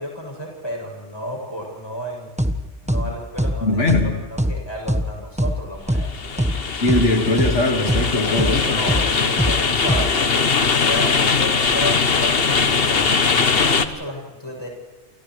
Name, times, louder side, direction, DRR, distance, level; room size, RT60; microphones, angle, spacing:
voice 1, 0.0-2.3 2.8-6.4 8.7-13.1 13.6-14.7, equal, 20° left, -1 dB, 7.9 m, -32 dB
sound 1, 2.4-2.5 2.9-3.0 3.4-3.5 3.9-4.0 4.4-4.5 4.9-5.0 5.4-5.5 5.9-6.0 6.4-6.5 6.9-7.0 7.4-7.5 7.9-8.0 8.4-8.5 8.9-9.0 9.4-9.5 9.9-10.0, equal, 5° right, 1.2 m, -21 dB
voice 2, 3.6-4.2 6.8-8.8, left 2 dB, 85° left, 2 dB, 2.5 m, -20 dB
sound 2, 5.8-13.9, left 5 dB, 55° left, 1.3 m, -20 dB
29.5 x 29.0 x 3.3 m, 1.3 s
omnidirectional pair, 1.2 m